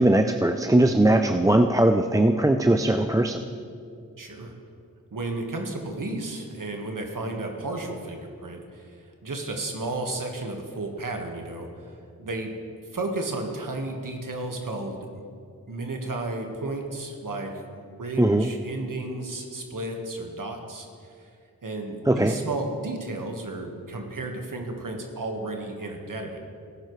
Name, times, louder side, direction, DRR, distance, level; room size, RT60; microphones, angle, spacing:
voice 1, 0.0-3.4 18.2-18.5 22.1-22.3, right 1 dB, 10° right, 6 dB, 0.5 m, -20 dB
voice 2, 4.2-4.5 5.1-9.0 9.2-11.9 12.2-12.5 12.9-15.2 15.7-21.3 21.6-26.4, right 2 dB, 65° right, 3 dB, 1.6 m, -33 dB
17.5 x 10.5 x 3.2 m, 2.4 s
cardioid pair, 45°, 35 cm